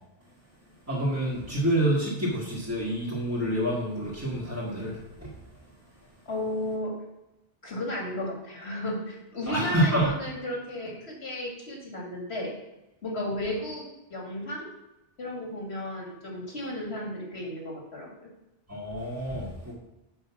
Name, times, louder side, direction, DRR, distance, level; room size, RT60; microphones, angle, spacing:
voice 1, 0.9-5.3 9.5-10.1 18.7-19.7, right 1 dB, 15° right, -8 dB, 2.0 m, -27 dB
voice 2, 6.3-6.9 7.6-12.5 13.0-14.7 15.2-18.1, left 1 dB, 85° left, -1 dB, 2.5 m, -34 dB
8.1 x 5.6 x 5.9 m, 0.94 s
omnidirectional pair, 1.1 m